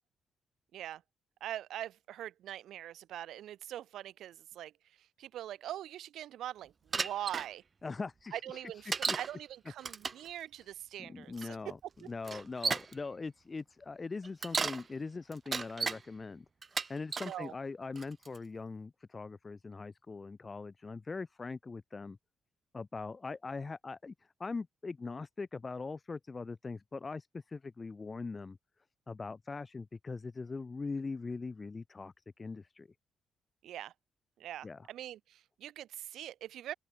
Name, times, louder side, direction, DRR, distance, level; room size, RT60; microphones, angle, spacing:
voice 1, 1.4-4.7 5.0-7.6 8.3-11.7 12.0-12.1 17.2-17.5 33.6-33.9 34.4-36.7, right 12 dB, 90° right, 1.0 m, -43 dB
Bicycle, 6.9-7.5 8.9-9.3 9.8-10.3 11.4-11.5 12.2-12.9 14.2-14.8 15.3-16.0 16.6-17.3 18.0-18.4, right 5 dB, 35° right, 0.9 m, -34 dB
voice 2, 7.8-8.6 9.1-9.2 11.0-11.8 12.1-16.5 16.9-22.2 22.7-24.1 24.4-28.6 29.1-32.9 34.6-34.9, left 4 dB, 25° left, 0.4 m, -41 dB
open air
cardioid pair, 130°, 0 cm